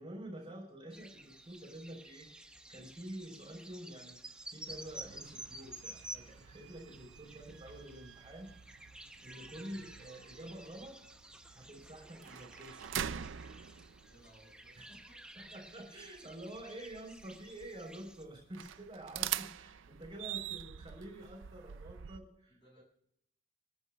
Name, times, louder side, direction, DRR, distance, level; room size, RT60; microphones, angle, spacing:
voice 1, 0.0-4.2 4.5-8.5 9.2-11.0 11.5-13.1 14.8-14.9 15.3-22.6, right 1 dB, 30° right, 0 dB, 3.6 m, -48 dB
sound 1, 0.9-18.2, right 1 dB, 5° right, 0.6 m, -52 dB
sound 2, 4.7-22.2, right 10 dB, 75° right, 0.4 m, -46 dB
voice 2, 14.1-15.3 22.5-22.8, equal, 30° left, -4 dB, 6.5 m, -62 dB
28.5 x 13.5 x 2.3 m, 0.75 s
head